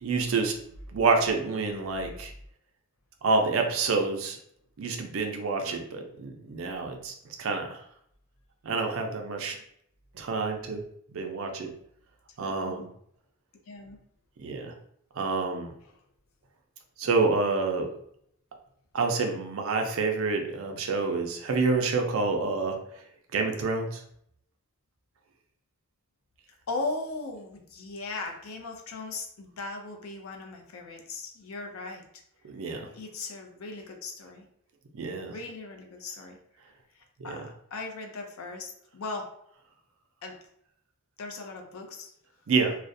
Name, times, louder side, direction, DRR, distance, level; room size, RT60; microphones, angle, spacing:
voice 1, 0.0-0.6 0.9-2.3 3.2-4.4 4.8-7.8 8.6-9.6 10.1-10.9 11.1-11.7 12.4-12.9 14.4-14.7 15.2-15.7 17.0-17.9 18.9-22.8 23.3-24.0 32.4-32.9 34.9-35.3 37.2-37.4 42.5-42.8, right 4 dB, 70° right, 4 dB, 0.4 m, -28 dB
voice 2, 12.4-12.9 13.7-14.0 15.8-16.0 26.5-32.2 32.9-34.5 35.1-36.4 36.9-39.3 40.2-40.4 41.2-42.1, left 3 dB, 75° left, 3 dB, 0.5 m, -38 dB
2.4 x 2.0 x 2.5 m, 0.70 s
head